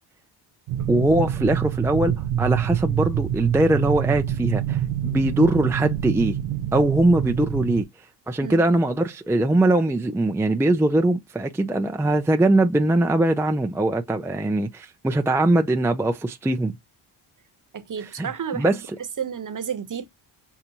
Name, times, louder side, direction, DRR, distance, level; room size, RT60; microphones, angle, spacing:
sound 1, 0.7-7.8, right 11 dB, 85° right, 0.7 m, -26 dB
voice 1, 0.9-6.4 6.7-7.8 8.3-16.8 18.0-18.8, right 1 dB, 5° right, 0.5 m, -21 dB
voice 2, 17.7-20.1, right 7 dB, 40° right, 1.1 m, -32 dB
6.8 x 2.4 x 2.9 m
supercardioid pair, 60°, 49 cm